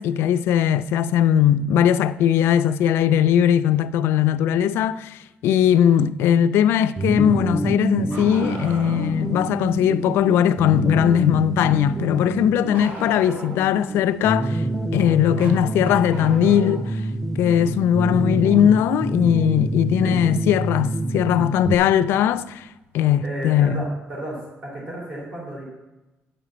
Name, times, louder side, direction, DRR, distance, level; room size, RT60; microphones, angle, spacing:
voice 1, 0.0-14.6 14.9-17.0 17.4-22.7 22.9-23.9, left 10 dB, 75° left, 0.4 m, -19 dB
sound 1, 7.0-21.7, right 2 dB, 5° right, 0.5 m, -27 dB
Bark, 8.1-9.2 12.7-13.8 15.4-16.9 18.5-18.6 20.6-20.7 21.8-21.9, right 2 dB, 60° right, 2.1 m, -37 dB
voice 2, 23.2-25.6, right 1 dB, 35° right, 3.1 m, -33 dB
8.8 x 5.0 x 7.6 m
cardioid pair, 175°, 4 cm